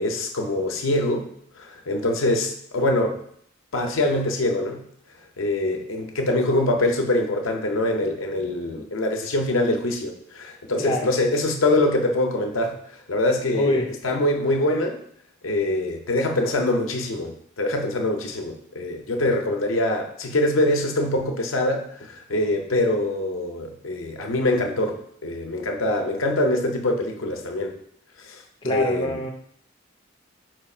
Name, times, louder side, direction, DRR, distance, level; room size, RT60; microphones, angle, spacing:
voice 1, 0.0-3.2 3.7-4.8 5.4-12.8 13.1-15.0 15.4-27.8 28.2-29.2, left 1 dB, 85° left, 2 dB, 0.7 m, -24 dB
voice 2, 10.8-11.1 13.5-13.9 28.6-29.3, left 1 dB, 25° left, 1 dB, 0.4 m, -25 dB
4.5 x 2.4 x 4.3 m, 0.65 s
head